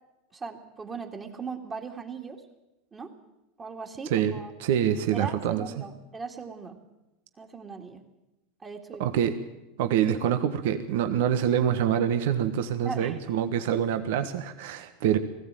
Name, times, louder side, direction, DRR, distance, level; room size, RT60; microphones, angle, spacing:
voice 1, 0.3-2.4 2.9-3.1 3.6-4.5 5.1-6.8 7.4-8.0 8.6-9.1 12.8-13.2, right 5 dB, 25° right, 0 dB, 2.4 m, -38 dB
voice 2, 4.1-5.6 9.0-9.4 9.8-15.2, right 9 dB, 70° right, 8 dB, 1.4 m, -26 dB
19.5 x 15.5 x 9.1 m, 0.97 s
supercardioid pair, 115°, 0 cm